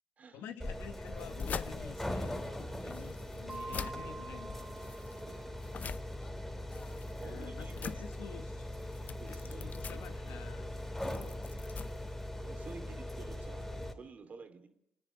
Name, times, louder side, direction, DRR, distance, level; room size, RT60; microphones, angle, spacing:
voice 1, 0.3-2.4 2.8-4.6 7.2-8.8 9.2-11.3, left 8 dB, 80° left, 1.6 m, -50 dB
sound 1, 0.6-13.9, left 1 dB, 5° left, 4.2 m, -41 dB
sound 2, 1.1-12.8, left 6 dB, 50° left, 0.8 m, -46 dB
sound 3, 3.5-6.0, right 3 dB, 15° right, 3.2 m, -47 dB
voice 2, 5.2-5.5 7.2-8.0 9.2-10.4 12.4-14.7, right 5 dB, 50° right, 2.6 m, -51 dB
29.0 x 10.0 x 9.1 m
supercardioid pair, 65°, 3 cm